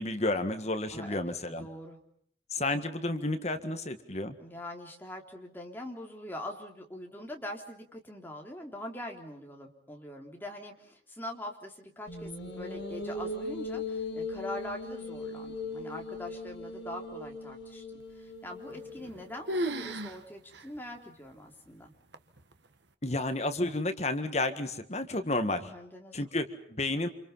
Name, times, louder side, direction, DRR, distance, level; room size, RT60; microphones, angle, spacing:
voice 1, 0.0-1.7 2.5-4.4 23.0-25.7 26.1-27.1, left 2 dB, 35° left, 8 dB, 1.7 m, -31 dB
voice 2, 0.9-2.0 4.4-17.9 18.1-21.9 25.5-26.2, left 1 dB, 10° left, 1 dB, 3.5 m, -43 dB
sound 1, 12.1-19.5, left 2 dB, 65° left, 6.3 m, -39 dB
sound 2, 18.7-19.2 19.5-20.2 20.5-20.6 21.3-21.4 22.1-22.5, right 1 dB, 65° right, 1.5 m, -34 dB
29.0 x 27.0 x 5.7 m, 0.65 s
head